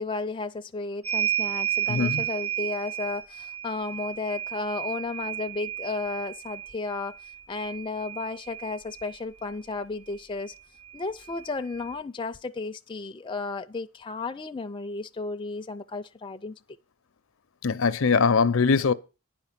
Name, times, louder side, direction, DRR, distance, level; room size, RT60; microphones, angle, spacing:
voice 1, 0.0-7.2 7.5-10.5 10.9-16.5, left 3 dB, 25° left, 0.4 m, -33 dB
sound 1, 1.0-9.2 10.4-10.5 10.8-11.9, right 10 dB, 80° right, 3.6 m, -33 dB
voice 2, 1.9-2.2 17.6-18.9, left 5 dB, 70° left, 0.6 m, -22 dB
10.0 x 5.1 x 7.3 m
head